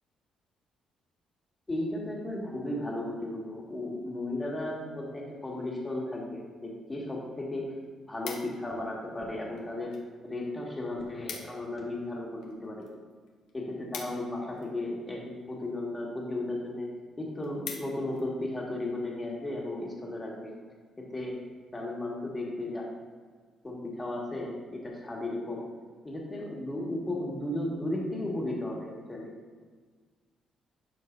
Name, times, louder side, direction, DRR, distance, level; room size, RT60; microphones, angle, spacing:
voice 1, 1.7-7.7 8.1-10.0 10.2-12.9 13.5-16.9 17.2-20.5 21.0-21.4 21.7-22.9 23.6-25.7 26.0-29.3, left 1 dB, 20° left, -3 dB, 2.0 m, -35 dB
sound 1, 7.7-8.8 9.5-10.1 10.4-10.5 10.7-10.8 11.1-11.7 12.0-14.9 15.6-16.0 16.5-16.6 16.9-17.0 17.3-18.3 18.7-19.0, left 6 dB, 90° left, 0.9 m, -44 dB
11.5 x 4.7 x 2.7 m, 1.5 s
cardioid pair, 90°, 0 cm